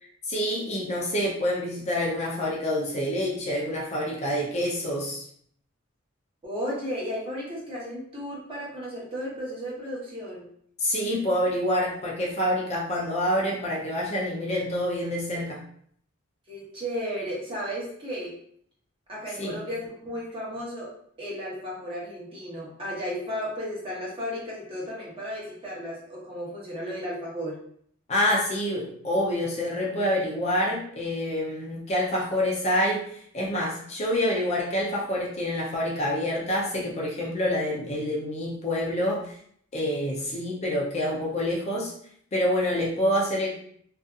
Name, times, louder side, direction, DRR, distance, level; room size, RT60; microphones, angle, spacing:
voice 1, 0.3-5.2 10.8-15.6 19.4-19.6 28.1-39.3 39.7-41.9 42.3-43.6, equal, 35° left, -3 dB, 0.5 m, -27 dB
voice 2, 6.4-10.5 16.5-18.3 19.1-20.9 21.2-27.5, equal, 25° right, -5 dB, 0.9 m, -34 dB
2.6 x 2.3 x 2.3 m, 0.64 s
head